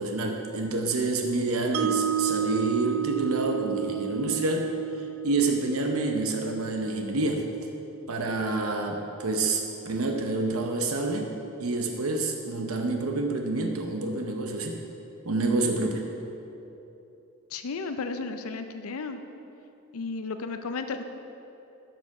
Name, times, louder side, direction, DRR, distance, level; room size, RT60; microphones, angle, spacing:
voice 1, 0.0-4.7 5.0-7.5 8.1-11.3 11.6-14.8 15.2-16.0, right 2 dB, 80° right, 3 dB, 0.8 m, -28 dB
Mallet percussion, 1.7-7.9, right 10 dB, 65° right, 0.4 m, -32 dB
voice 2, 17.5-19.2 19.9-21.0, left 4 dB, 80° left, 8 dB, 0.5 m, -33 dB
12.0 x 6.7 x 4.8 m, 3.0 s
head